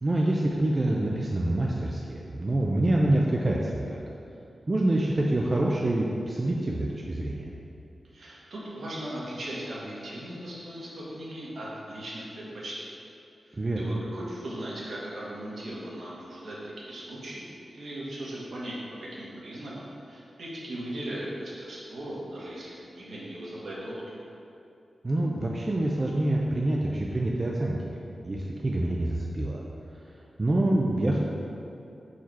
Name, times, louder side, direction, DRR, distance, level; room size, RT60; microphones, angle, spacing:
voice 1, 0.0-4.0 4.7-7.5 13.6-14.0 25.0-28.0 28.2-29.6 30.4-31.2, right 1 dB, 25° right, -2 dB, 0.4 m, -26 dB
voice 2, 8.1-12.9 13.5-24.2, right 1 dB, 65° right, -6 dB, 1.3 m, -38 dB
4.7 x 4.3 x 4.6 m, 2.8 s
wide cardioid pair, 170°, 0 cm